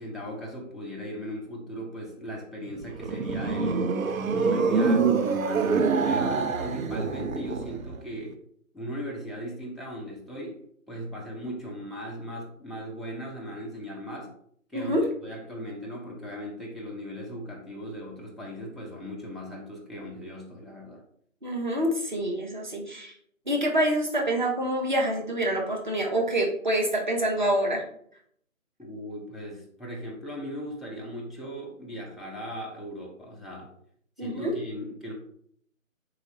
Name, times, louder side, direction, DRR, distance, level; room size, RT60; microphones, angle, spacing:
voice 1, 0.0-3.9 4.3-8.4 8.7-14.3 14.7-21.0 28.8-33.7 34.2-35.1, equal, ahead, -1 dB, 0.4 m, -38 dB
sound 1, 2.7-8.0, right 4 dB, 75° right, 0.5 m, -25 dB
voice 2, 21.4-23.1 23.5-27.8 34.2-34.5, right 1 dB, 35° right, 1 dB, 0.7 m, -26 dB
3.8 x 2.9 x 2.8 m, 0.65 s
figure-of-eight pair, 160°, 41 cm